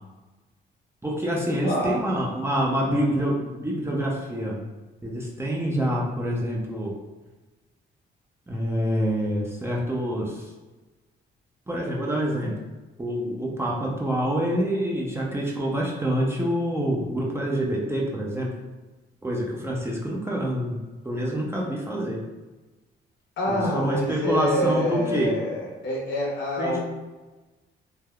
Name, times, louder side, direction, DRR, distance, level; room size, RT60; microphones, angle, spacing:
voice 1, 1.0-4.6 5.0-7.0 8.5-10.5 11.7-12.6 13.0-18.5 19.2-20.8 21.0-22.2 23.5-25.4 26.6-26.8, equal, 10° right, -2 dB, 0.5 m, -26 dB
voice 2, 1.6-2.0 23.4-26.8, left 1 dB, 70° left, -3 dB, 0.9 m, -26 dB
3.3 x 2.2 x 2.3 m, 1.2 s
cardioid pair, 90°, 20 cm